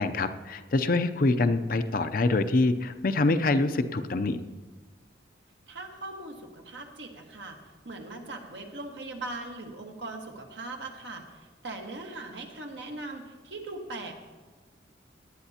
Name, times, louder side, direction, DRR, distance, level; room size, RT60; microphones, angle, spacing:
voice 1, 0.0-4.4, left 2 dB, 50° left, 10 dB, 0.5 m, -25 dB
voice 2, 5.7-7.6 7.8-14.1, right 2 dB, 70° right, 2 dB, 1.5 m, -40 dB
18.0 x 11.0 x 2.9 m, 1.3 s
head